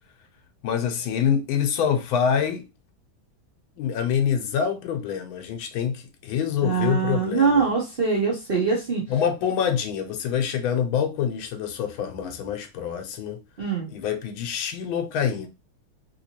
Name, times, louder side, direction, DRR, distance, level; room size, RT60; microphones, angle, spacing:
voice 1, 0.6-2.7 3.8-7.7 9.1-13.4 13.9-15.5, left 8 dB, 90° left, 1.4 m, -26 dB
voice 2, 6.6-9.0 13.6-13.9, right 5 dB, 55° right, 0.6 m, -23 dB
3.4 x 2.9 x 2.8 m
omnidirectional pair, 2.2 m